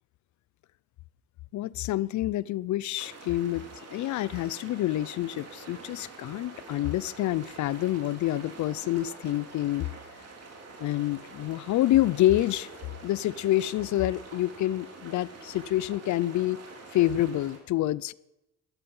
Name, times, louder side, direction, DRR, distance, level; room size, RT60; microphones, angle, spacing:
voice 1, 1.5-3.7 3.9-9.9 10.8-12.7 13.0-16.6 16.9-18.1, left 14 dB, 70° left, 0.5 m, -27 dB
sound 1, 3.0-17.6, right 3 dB, 55° right, 3.3 m, -46 dB
13.0 x 12.5 x 5.5 m
cardioid pair, 90°, 30 cm